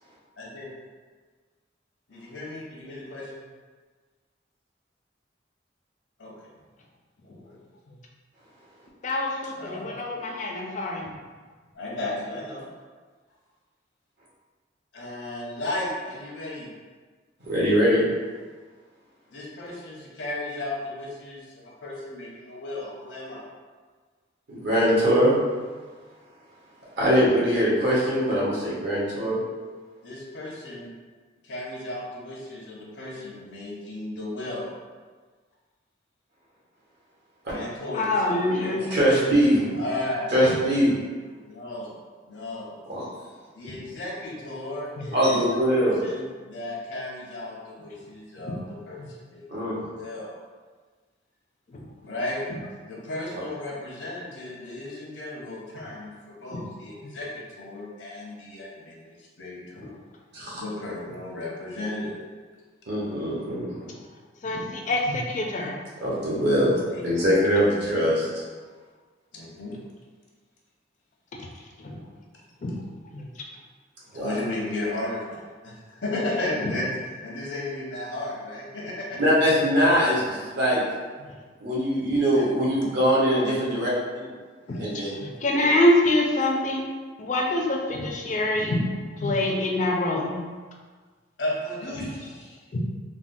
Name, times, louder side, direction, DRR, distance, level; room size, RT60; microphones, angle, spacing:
voice 1, 0.4-0.7 2.1-3.4 6.2-6.3 7.2-7.6 9.6-10.0 11.7-12.7 14.9-16.7 19.3-23.4 30.0-30.9 31.4-34.7 37.5-38.8 39.7-40.3 41.4-41.9 42.3-42.7 43.6-45.4 45.7-50.3 52.0-52.4 52.9-59.9 60.6-62.2 66.9-67.0 69.3-69.8 74.1-79.2 82.1-82.7 84.6-84.9 91.4-92.6, left 1 dB, 80° left, -3 dB, 0.8 m, -34 dB
voice 2, 9.0-11.1 37.9-38.9 45.0-45.1 48.4-48.6 56.5-56.6 64.4-65.8 71.8-72.0 72.6-72.8 73.1-73.3 84.7-84.8 85.2-86.8 87.2-90.4 92.7-92.8, left 1 dB, 40° left, -1 dB, 0.4 m, -25 dB
voice 3, 17.4-18.1 24.5-25.4 27.0-29.4 37.4-37.5 38.5-39.6 40.3-40.9 45.1-46.0 49.5-49.9 60.3-60.6 62.9-63.8 66.0-68.4 74.1-74.4 79.2-80.8 81.6-84.3 84.8-85.1 85.5-85.6, equal, 65° right, -7 dB, 1.0 m, -22 dB
3.5 x 2.1 x 2.6 m, 1.5 s
head